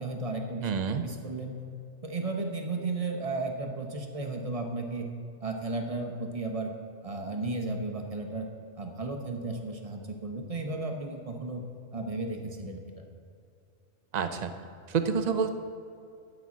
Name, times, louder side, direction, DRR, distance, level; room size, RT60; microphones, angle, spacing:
voice 1, 0.0-0.7 1.0-1.6 2.0-5.1 5.4-6.7 7.0-8.5 8.8-11.6 11.9-13.0, right 3 dB, 30° right, 3 dB, 0.9 m, -34 dB
voice 2, 0.6-1.0 14.1-14.5 14.9-15.5, right 6 dB, 45° right, 8 dB, 0.5 m, -28 dB
10.5 x 5.4 x 7.3 m, 2.6 s
omnidirectional pair, 1.4 m